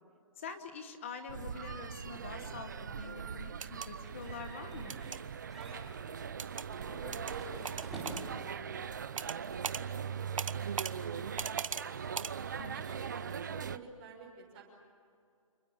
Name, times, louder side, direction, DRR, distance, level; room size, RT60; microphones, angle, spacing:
voice 1, 0.4-5.0 12.6-12.8, left 5 dB, 25° left, 8 dB, 1.2 m, -45 dB
sound 1, 1.3-13.8, right 7 dB, 35° right, 0.6 m, -41 dB
sound 2, 3.5-3.9 4.9-5.2 6.4-6.7 7.1-7.3 7.6-8.2 9.2-9.4 9.6-9.8 10.4-10.9 11.4-11.8 12.1-12.3, right 6 dB, 70° right, 1.1 m, -38 dB
sound 3, 4.0-5.2 5.5-5.9 7.2-8.4, right 1 dB, ahead, 4.2 m, -48 dB
voice 2, 5.6-10.3 10.5-12.2 12.7-14.6, right 3 dB, 20° right, -2 dB, 5.8 m, -51 dB
29.5 x 22.0 x 7.3 m, 2.4 s
hypercardioid pair, 180°, 17 cm